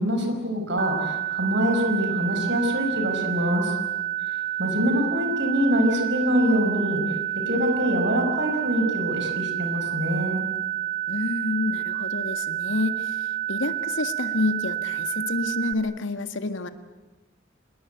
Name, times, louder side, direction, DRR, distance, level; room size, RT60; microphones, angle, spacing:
voice 1, 0.0-3.7 4.3-7.0 7.5-10.4, equal, 65° right, 4 dB, 5.3 m, -24 dB
sound 1, 0.8-15.7, right 13 dB, 50° right, 1.3 m, -29 dB
voice 2, 11.1-16.7, left 3 dB, 80° left, 9 dB, 1.8 m, -28 dB
27.5 x 21.0 x 9.2 m, 1.2 s
head